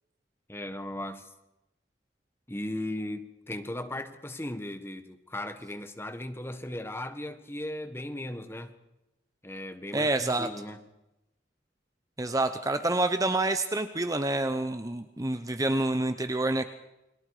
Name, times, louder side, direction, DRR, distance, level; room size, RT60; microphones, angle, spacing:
voice 1, 0.5-1.3 2.5-8.7 9.4-10.9, left 1 dB, 15° left, 1.6 m, -37 dB
voice 2, 9.9-10.5 12.2-16.7, right 2 dB, 20° right, 0.9 m, -27 dB
29.5 x 22.0 x 5.0 m
head